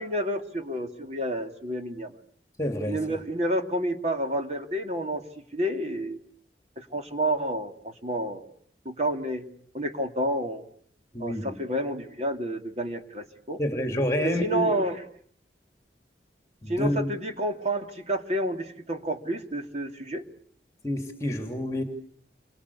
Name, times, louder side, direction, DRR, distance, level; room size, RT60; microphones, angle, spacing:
voice 1, 0.0-2.2 2.9-5.2 5.5-6.2 6.8-8.5 8.8-9.4 9.7-10.6 11.2-13.6 14.2-15.0 16.7-20.2, right 1 dB, 40° right, 5 dB, 2.9 m, -29 dB
voice 2, 2.6-3.0 11.1-11.5 13.6-14.7 16.6-17.1 20.8-21.8, equal, 20° left, 6 dB, 2.8 m, -28 dB
29.0 x 23.5 x 8.5 m, 0.62 s
head